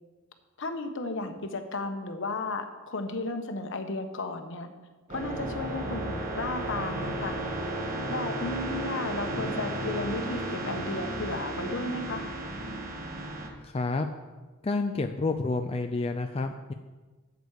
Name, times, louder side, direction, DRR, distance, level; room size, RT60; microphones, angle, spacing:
voice 1, 0.6-4.7 5.1-7.4 8.1-12.3, left 2 dB, 60° left, 6 dB, 1.1 m, -34 dB
sound 1, 5.1-13.5, right 1 dB, 35° right, 1.6 m, -34 dB
voice 2, 13.6-14.1 14.6-16.7, left 3 dB, 25° left, 5 dB, 0.4 m, -29 dB
13.0 x 8.2 x 4.8 m, 1.3 s
head